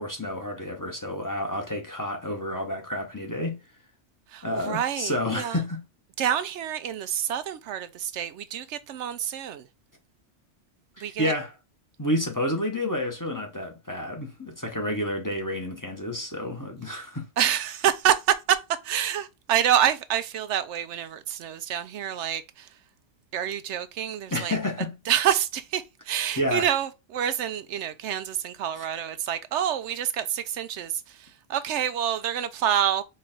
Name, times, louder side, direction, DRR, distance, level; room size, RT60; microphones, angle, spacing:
voice 1, 0.0-3.6 4.4-5.8 11.0-11.5 12.0-17.3 24.3-24.9 26.4-26.7 28.8-28.9, left 1 dB, 15° left, 1.0 m, -30 dB
voice 2, 4.3-5.6 6.2-9.6 11.0-11.3 17.4-18.6 18.8-22.7 23.3-24.6 25.1-30.9 31.2-33.0, right 10 dB, 80° right, 0.9 m, -27 dB
4.4 x 3.2 x 3.8 m
omnidirectional pair, 1.2 m